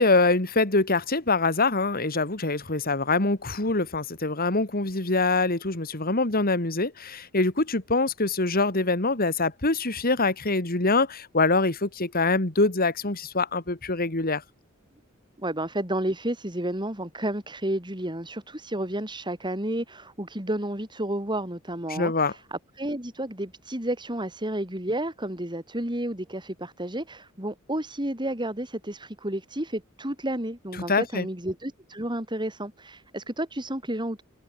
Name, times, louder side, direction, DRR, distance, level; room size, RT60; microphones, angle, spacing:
voice 1, 0.0-14.4 21.9-22.3 30.9-31.3, left 3 dB, 45° left, 2.6 m, -24 dB
voice 2, 15.4-34.2, right 1 dB, 20° right, 5.4 m, -31 dB
head